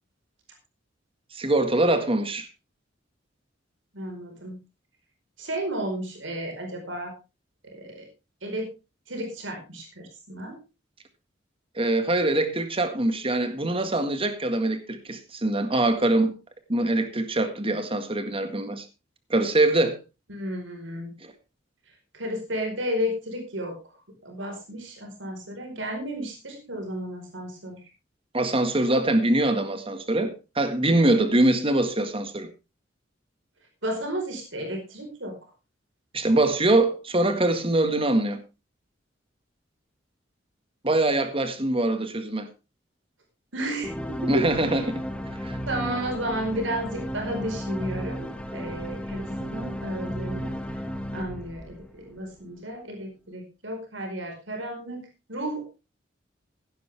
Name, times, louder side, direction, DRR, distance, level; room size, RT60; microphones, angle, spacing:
voice 1, 1.3-2.5 11.7-16.3 16.7-18.8 19.3-20.0 28.3-32.5 36.1-38.4 40.8-42.5 44.3-45.0 45.4-45.6, right 2 dB, 30° right, 1.8 m, -23 dB
voice 2, 3.9-4.6 5.4-7.1 7.6-8.0 8.4-8.7 9.1-10.6 20.3-21.1 22.1-23.8 24.2-27.8 33.8-35.4 43.5-44.4 45.7-50.5 51.1-55.7, right 1 dB, 80° right, 4.7 m, -33 dB
sound 1, 43.8-52.3, equal, 5° left, 1.5 m, -33 dB
15.5 x 11.0 x 3.5 m
head